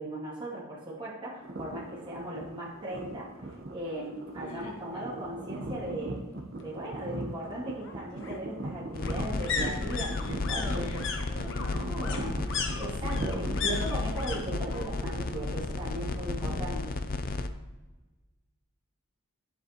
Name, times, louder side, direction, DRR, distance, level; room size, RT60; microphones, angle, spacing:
voice 1, 0.0-3.3 3.7-6.3 6.6-10.2 10.5-11.0 11.7-12.4 12.8-17.0, right 1 dB, 20° right, -9 dB, 2.5 m, -38 dB
sound 1, 1.4-16.6, right 2 dB, 45° right, 0.9 m, -40 dB
sound 2, 3.5-3.6 4.0-4.1 4.3-5.3 6.6-14.4 14.6-15.2 15.5-16.5 16.8-16.9, left 5 dB, 55° left, 1.1 m, -37 dB
voice 2, 4.4-5.1 10.2-12.2, left 2 dB, 75° left, -2 dB, 2.3 m, -44 dB
sound 3, 8.9-17.5, left 3 dB, 40° left, 0.4 m, -33 dB
10.5 x 7.6 x 3.0 m, 1.2 s
head